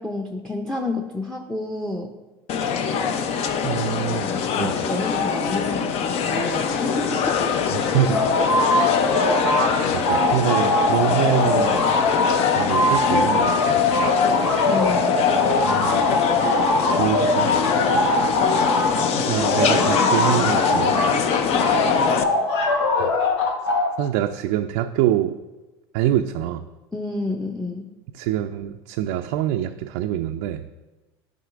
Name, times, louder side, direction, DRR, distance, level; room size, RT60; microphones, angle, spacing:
voice 1, 0.0-2.1 4.2-7.5 14.7-15.1 19.4-19.5 20.0-20.1 26.9-27.9, left 2 dB, 5° left, 3 dB, 0.6 m, -29 dB
sound 1, 2.5-22.2, left 6 dB, 50° left, 0.6 m, -24 dB
voice 2, 3.6-4.8 7.7-8.2 9.0-9.3 9.9-11.8 12.5-13.8 15.6-15.9 16.9-17.5 19.1-21.0 23.0-23.2 24.0-25.3 25.9-26.7 28.1-30.6, right 11 dB, 65° right, 6 dB, 0.4 m, -25 dB
sound 2, 8.1-9.8 10.0-19.0 19.4-21.2 21.6-23.9, left 2 dB, 85° left, 1.1 m, -21 dB
10.5 x 5.2 x 2.5 m, 1.1 s
hypercardioid pair, 90°, 14 cm